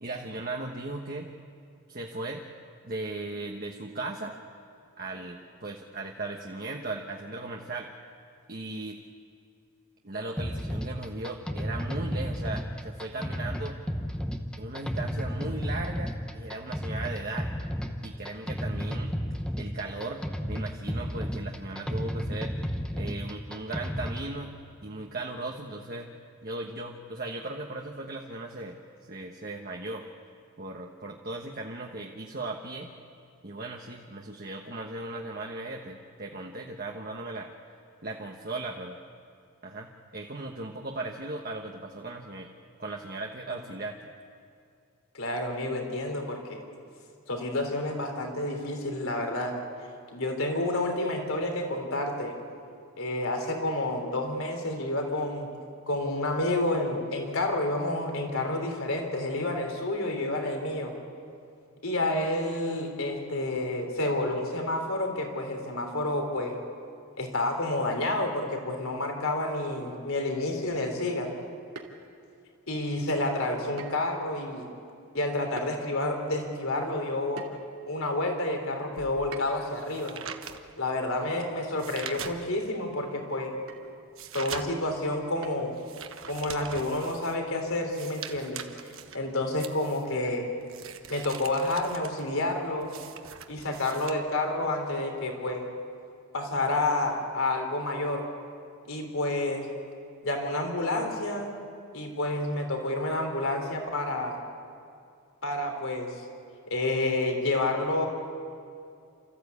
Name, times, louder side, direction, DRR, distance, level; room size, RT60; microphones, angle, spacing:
voice 1, 0.0-1.3 1.9-2.4 2.8-4.3 5.0-7.9 8.5-9.0 10.0-13.8 14.6-17.5 18.0-19.1 19.6-22.5 22.9-24.6 24.8-26.1 26.4-28.8 29.1-30.0 30.6-32.9 33.4-37.5 38.0-39.0 39.6-42.5 42.8-44.0, right 2 dB, 40° right, 0 dB, 1.2 m, -37 dB
sound 1, 10.4-24.3, equal, 5° left, 0.8 m, -33 dB
voice 2, 45.1-46.6 47.3-49.5 50.1-52.4 53.0-55.5 55.9-60.9 61.8-66.6 67.2-71.3 72.7-74.6 75.1-77.5 77.9-80.2 80.8-83.5 84.3-85.7 86.3-88.7 89.1-90.5 91.1-92.9 93.5-95.6 96.3-98.2 98.8-99.7 100.2-101.5 101.9-104.4 105.4-106.2 106.7-108.1, left 2 dB, 70° left, 3 dB, 3.4 m, -29 dB
Pickaxe Striking Rock, 71.8-72.4 73.8-74.2 74.5-74.6 75.6-75.8 77.4-77.8 79.3-79.7 81.5-81.6 82.0-82.2 82.5-82.6 83.7-84.0 85.4-85.9, right 3 dB, 90° right, 2.6 m, -45 dB
sound 2, 79.0-82.8 83.2-94.1, right 7 dB, 65° right, 1.3 m, -43 dB
29.0 x 14.5 x 8.4 m, 2.4 s
head